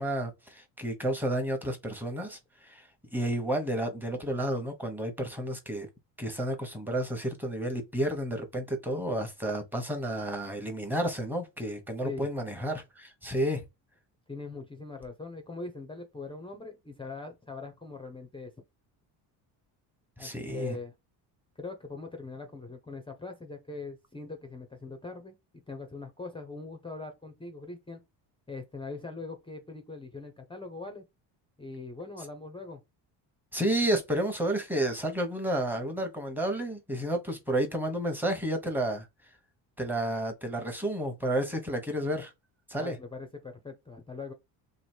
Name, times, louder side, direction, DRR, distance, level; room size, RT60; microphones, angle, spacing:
voice 1, 0.0-2.9 3.1-5.9 6.2-13.6 20.2-20.8 33.5-39.1 39.8-42.3 42.7-43.0, right 1 dB, 5° right, 1.1 m, -31 dB
voice 2, 14.3-18.5 20.2-20.9 21.6-28.0 28.5-31.0 31.6-32.8 42.7-44.3, left 3 dB, 10° left, 0.7 m, -41 dB
3.1 x 2.6 x 4.4 m
cardioid pair, 105°, 45 cm